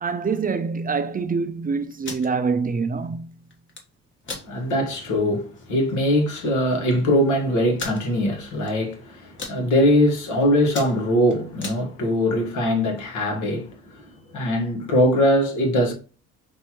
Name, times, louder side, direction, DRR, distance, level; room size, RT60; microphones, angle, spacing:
voice 1, 0.0-3.3, right 5 dB, 30° right, 0.5 m, -25 dB
sound 1, 1.9-2.3 3.5-3.8 4.2-4.5 5.0-5.1 5.4-5.7 6.4-6.5 6.7-6.8 7.8-8.0 8.6-8.9 9.2-9.6 10.1-10.3 10.6-11.8, left 3 dB, 40° left, 1.3 m, -35 dB
voice 2, 4.5-14.0 14.3-15.9, left 1 dB, 80° left, 1.5 m, -21 dB
5.4 x 2.6 x 2.9 m
cardioid pair, 90°, 30 cm